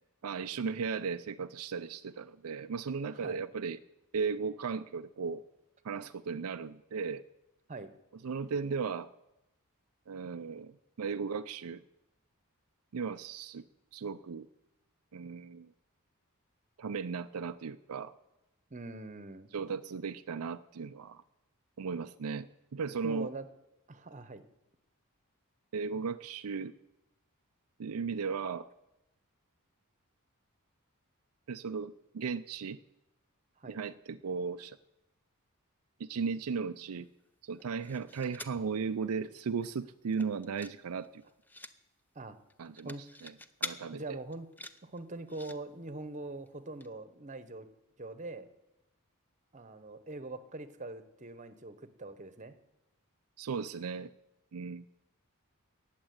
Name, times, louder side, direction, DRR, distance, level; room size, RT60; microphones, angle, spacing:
voice 1, 0.2-3.8 4.1-5.4 5.8-7.2 8.2-9.1 10.1-11.8 12.9-13.6 13.9-14.5 15.1-15.7 16.8-18.1 19.5-21.2 21.8-23.3 25.7-26.8 27.8-28.7 31.5-32.8 33.7-34.8 36.0-37.1 37.4-41.2 42.6-42.9 43.2-43.3 43.6-44.2 53.4-54.1 54.5-54.9, right 5 dB, 75° right, 9 dB, 0.5 m, -36 dB
voice 2, 3.1-3.4 7.7-7.9 18.7-19.5 23.0-23.5 23.9-24.4 33.6-33.8 42.1-42.4 42.8-43.0 43.9-44.5 44.8-47.7 48.0-48.5 49.5-52.5, right 2 dB, 35° right, 12 dB, 1.0 m, -43 dB
sound 1, 37.5-38.6 39.1-39.2 39.4-39.7 40.1-40.8 41.0-41.7 42.5-43.8 44.3-45.6 46.5-46.6 46.8-46.9, left 2 dB, 10° left, 0.6 m, -45 dB
17.5 x 7.4 x 9.5 m, 0.93 s
head